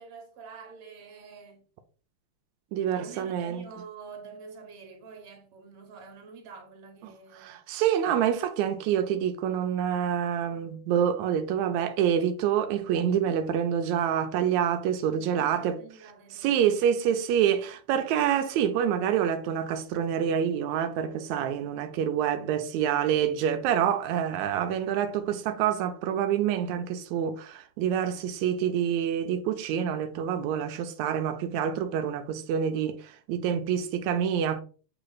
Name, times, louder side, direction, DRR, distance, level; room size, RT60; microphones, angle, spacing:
voice 1, 0.0-1.6 2.9-7.6 15.1-16.9, right 5 dB, 55° right, 1.9 m, -47 dB
voice 2, 2.7-3.6 7.3-15.8 16.3-34.6, right 9 dB, 90° right, 1.6 m, -27 dB
7.8 x 3.2 x 4.0 m
omnidirectional pair, 3.9 m